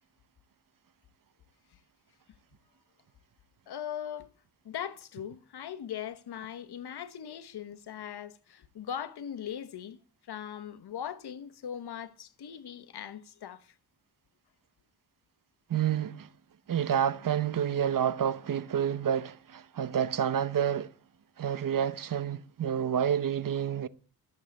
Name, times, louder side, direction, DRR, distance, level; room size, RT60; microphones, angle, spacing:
voice 1, 3.7-4.3 4.6-10.0 10.3-13.7, left 9 dB, 85° left, 1.2 m, -40 dB
voice 2, 15.7-16.3 16.7-20.9 21.4-23.9, right 9 dB, 60° right, 0.9 m, -29 dB
12.5 x 7.4 x 8.6 m
cardioid pair, 80°, 38 cm